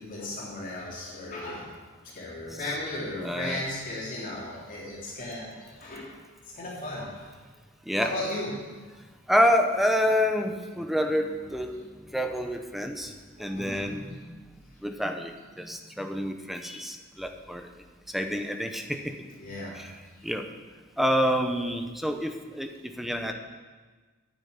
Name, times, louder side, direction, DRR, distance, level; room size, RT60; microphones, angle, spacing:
voice 1, 0.0-1.7 2.0-6.1 6.5-7.3 8.0-8.8 13.4-13.9 19.4-19.8, left 1 dB, 40° left, -5 dB, 3.4 m, -36 dB
voice 2, 3.2-3.6 7.9-8.1 9.3-11.8 12.1-13.1 13.4-14.4 14.8-17.7 18.1-19.1 19.7-19.9 20.2-20.4 21.0-23.3, equal, ahead, 5 dB, 1.0 m, -28 dB
9.6 x 9.2 x 8.7 m, 1.4 s
head